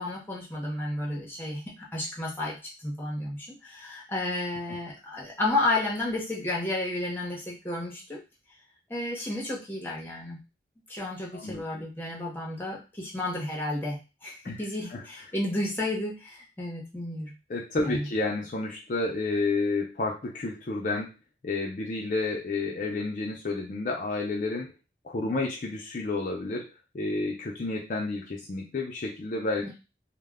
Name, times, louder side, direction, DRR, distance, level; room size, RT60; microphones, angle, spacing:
voice 1, 0.0-8.2 8.9-10.4 10.9-17.3 17.8-18.1 29.6-29.8, left 2 dB, 10° left, -4 dB, 0.7 m, -32 dB
voice 2, 11.3-11.6 14.4-14.6 14.9-15.1 17.5-21.1 21.4-24.7 25.0-26.7 26.9-29.7, left 3 dB, 45° left, -1 dB, 0.4 m, -30 dB
2.1 x 2.1 x 3.4 m, 0.29 s
head